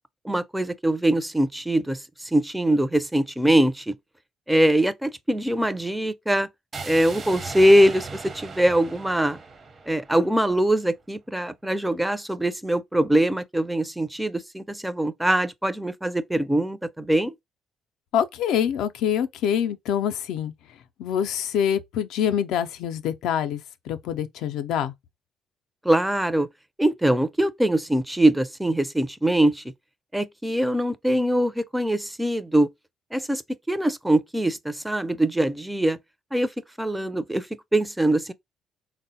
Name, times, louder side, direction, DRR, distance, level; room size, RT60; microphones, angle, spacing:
voice 1, 0.2-2.0 2.3-3.9 4.5-6.5 6.8-9.4 9.9-17.3 25.8-26.5 26.8-29.6 30.1-32.7 33.1-33.4 33.7-36.0 36.3-36.5 36.8-37.5 37.7-38.3, right 1 dB, 10° right, 0.4 m, -22 dB
sound 1, 6.7-10.8, right 4 dB, 45° right, 0.7 m, -38 dB
voice 2, 18.1-20.5 21.0-23.6 23.9-24.9, left 9 dB, 80° left, 0.3 m, -25 dB
3.6 x 2.0 x 2.7 m
supercardioid pair, 65°, 0 cm